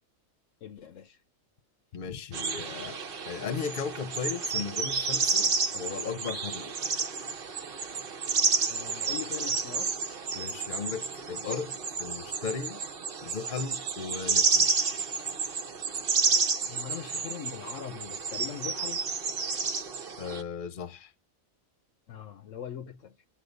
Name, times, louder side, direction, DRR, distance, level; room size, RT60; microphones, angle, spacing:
voice 1, 0.6-1.2 8.7-9.9 10.4-10.5 16.6-19.0 22.1-23.1, left 9 dB, 70° left, 1.1 m, -41 dB
voice 2, 1.9-3.0 3.2-6.7 10.3-12.8 13.2-14.7 20.2-21.1, left 6 dB, 40° left, 1.0 m, -36 dB
sound 1, 2.3-20.4, right 5 dB, 50° right, 1.1 m, -30 dB
8.9 x 8.5 x 5.3 m
omnidirectional pair, 1.4 m